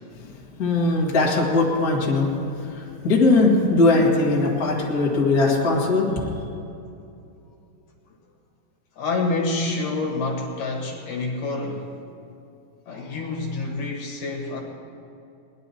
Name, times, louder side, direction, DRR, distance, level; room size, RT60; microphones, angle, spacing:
voice 1, 0.6-2.3 2.6-6.2, left 2 dB, 35° left, -3 dB, 1.6 m, -20 dB
voice 2, 9.0-11.9 12.9-14.6, left 3 dB, 65° left, 0 dB, 2.8 m, -27 dB
20.0 x 11.0 x 4.2 m, 2.6 s
omnidirectional pair, 4.3 m